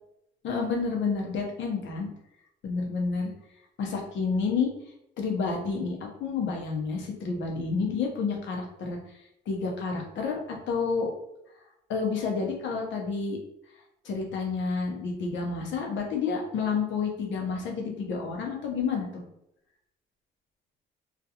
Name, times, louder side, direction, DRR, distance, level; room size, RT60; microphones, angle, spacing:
voice 1, 0.4-2.1 2.6-3.3 3.8-4.7 5.2-9.0 9.5-11.1 11.9-13.4 14.0-19.2, left 5 dB, 70° left, 1 dB, 0.7 m, -29 dB
2.4 x 2.3 x 2.8 m, 0.80 s
cardioid pair, 90°, 20 cm